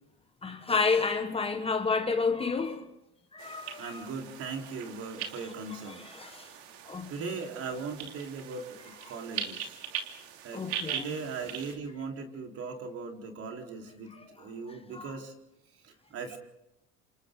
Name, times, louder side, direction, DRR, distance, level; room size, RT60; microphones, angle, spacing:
voice 1, 0.4-2.9 3.3-4.1 5.9-6.5 6.9-7.3 10.5-11.1 14.1-14.2 14.7-15.1, left 4 dB, 20° left, 1.6 m, -31 dB
sound 1, 3.4-11.7, right 9 dB, 85° right, 3.0 m, -41 dB
voice 2, 3.8-6.1 7.1-9.8 10.4-15.3 15.8-16.4, right 4 dB, 45° right, 4.2 m, -39 dB
28.5 x 27.5 x 3.9 m
supercardioid pair, 110°, 31 cm